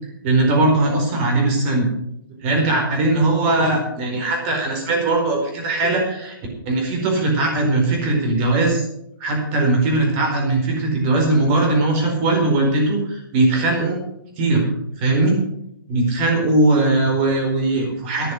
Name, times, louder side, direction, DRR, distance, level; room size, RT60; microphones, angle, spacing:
voice 1, 0.2-1.9 2.4-6.4 6.6-8.8 9.2-14.0 14.4-14.7 15.0-15.3 15.9-18.3, right 2 dB, 30° right, 2 dB, 4.5 m, -19 dB
11.5 x 10.5 x 6.4 m, 0.77 s
hypercardioid pair, 155°, 12 cm